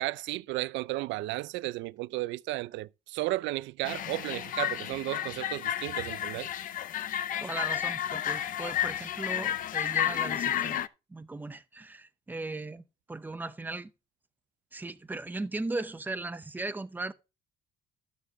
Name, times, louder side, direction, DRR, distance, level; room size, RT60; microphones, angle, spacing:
voice 1, 0.0-6.5, right 18 dB, 85° right, 0.5 m, -34 dB
sound 1, 3.8-10.9, left 10 dB, 45° left, 0.6 m, -32 dB
voice 2, 7.4-10.8 11.1-13.9 14.7-17.1, right 2 dB, 10° right, 0.6 m, -37 dB
13.0 x 7.2 x 3.5 m
cardioid pair, 160°, 19 cm